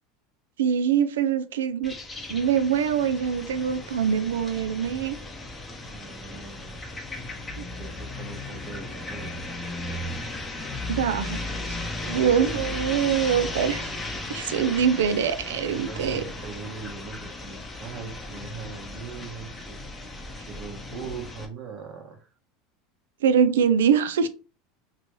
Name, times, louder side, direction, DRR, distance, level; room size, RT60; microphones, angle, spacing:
voice 1, 0.6-1.9 2.3-5.2 7.6-7.7 10.9-11.8 12.0-13.9 14.3-16.2 23.2-24.3, right 7 dB, 85° right, 0.3 m, -24 dB
sound 1, 1.8-21.5, left 2 dB, 20° left, 0.7 m, -36 dB
voice 2, 5.8-6.9 7.7-10.0 15.9-22.3, right 5 dB, 50° right, 1.0 m, -41 dB
2.8 x 2.2 x 3.0 m
hypercardioid pair, 105°, 0 cm